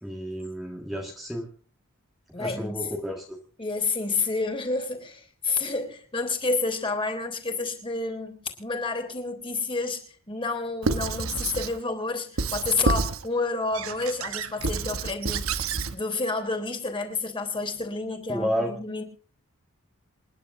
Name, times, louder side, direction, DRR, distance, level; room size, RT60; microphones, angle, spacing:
voice 1, 0.0-1.5 2.3-3.4 18.3-18.8, equal, ahead, 0 dB, 1.7 m, -31 dB
voice 2, 2.3-2.9 3.6-15.5 15.9-19.0, left 3 dB, 25° left, 5 dB, 3.5 m, -29 dB
Squeak / Writing, 10.8-11.8 12.4-13.3 13.7-15.9, right 4 dB, 80° right, 1.0 m, -28 dB
28.0 x 10.5 x 2.6 m, 0.43 s
head